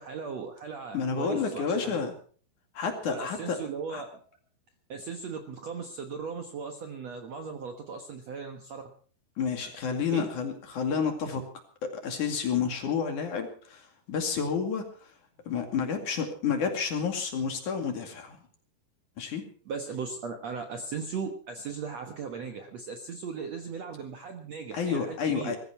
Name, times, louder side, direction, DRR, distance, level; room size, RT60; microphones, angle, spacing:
voice 1, 0.0-2.0 3.1-4.2 4.9-8.8 10.1-10.2 19.7-25.6, right 5 dB, 60° right, 5 dB, 1.9 m, -37 dB
voice 2, 0.9-2.1 2.8-3.6 3.9-4.0 9.4-11.4 11.8-15.1 15.5-18.4 19.2-19.4 24.7-25.6, left 6 dB, 50° left, 5 dB, 3.4 m, -30 dB
20.0 x 14.5 x 4.4 m, 0.43 s
omnidirectional pair, 4.7 m